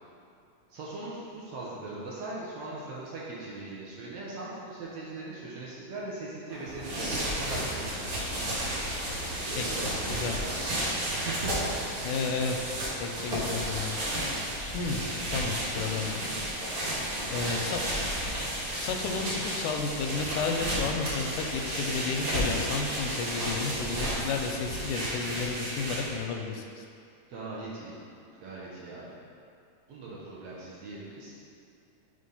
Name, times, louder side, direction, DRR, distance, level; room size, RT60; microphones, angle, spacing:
voice 1, 0.7-8.4 9.3-10.9 11.2-11.7 16.8-17.2 27.3-28.0 28.4-29.2 29.9-31.4, right 2 dB, 70° right, -6 dB, 1.6 m, -40 dB
sound 1, 6.5-13.5, right 1 dB, 85° right, 2.9 m, -49 dB
sound 2, 6.7-26.3, equal, 45° right, 2.0 m, -32 dB
voice 2, 12.0-12.6 13.0-14.0 14.7-15.0 15.3-16.2 17.3-17.8 18.7-26.8, left 4 dB, 85° left, 3 dB, 2.1 m, -32 dB
6.5 x 3.4 x 5.4 m, 2.4 s
omnidirectional pair, 3.5 m